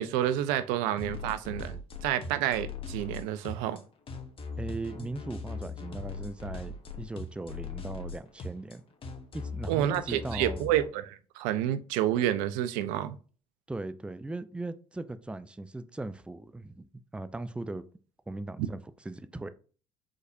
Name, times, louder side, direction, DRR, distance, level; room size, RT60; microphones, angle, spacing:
voice 1, 0.0-3.8 9.7-13.2, right 11 dB, 70° right, 0.5 m, -29 dB
sound 1, 1.0-10.9, left 3 dB, 40° left, 1.1 m, -39 dB
voice 2, 4.6-8.8 9.3-10.6 13.7-16.9 17.1-17.8 18.3-19.5, right 2 dB, 5° right, 0.5 m, -38 dB
5.1 x 4.0 x 2.6 m
hypercardioid pair, 60°, 14 cm